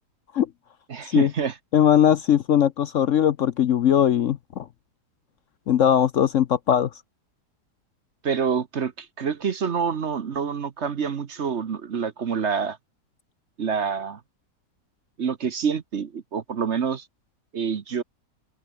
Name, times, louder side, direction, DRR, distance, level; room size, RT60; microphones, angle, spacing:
voice 1, 0.9-1.6 8.2-12.8 13.6-14.2 15.2-17.1 17.5-18.0, right 6 dB, 45° right, 1.2 m, -27 dB
voice 2, 1.7-4.6 5.7-6.9, left 9 dB, 60° left, 0.9 m, -20 dB
open air
omnidirectional pair, 1.7 m